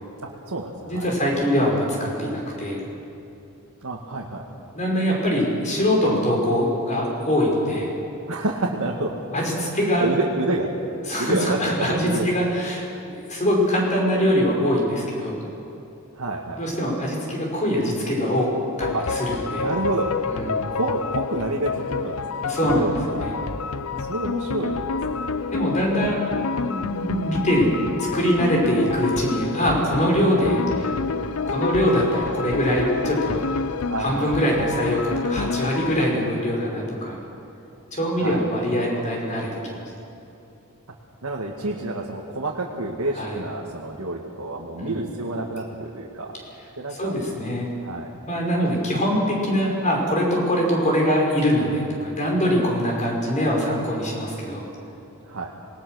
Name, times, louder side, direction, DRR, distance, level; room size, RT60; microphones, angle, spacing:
voice 1, 0.2-1.1 3.8-4.4 8.3-9.1 9.4-10.7 11.2-12.5 16.2-16.6 18.9-19.0 19.6-20.1 20.7-23.5 24.0-25.3 33.9-34.5 38.2-38.4 41.2-46.4 46.8-47.1 47.8-48.1 55.3-55.5, right 2 dB, 80° right, -2 dB, 2.0 m, -29 dB
voice 2, 0.9-2.8 4.7-7.9 9.3-10.1 11.1-15.4 16.6-19.7 20.3-20.6 22.4-23.3 23.9-24.0 25.5-26.3 26.6-27.7 28.0-33.7 34.0-37.2 37.9-39.8 43.1-43.4 44.8-45.1 47.0-47.7 48.3-54.7, equal, 35° left, -1 dB, 5.6 m, -23 dB
sound 1, 18.8-36.0, left 4 dB, 75° left, 0.7 m, -28 dB
26.5 x 20.0 x 6.4 m, 2.8 s
head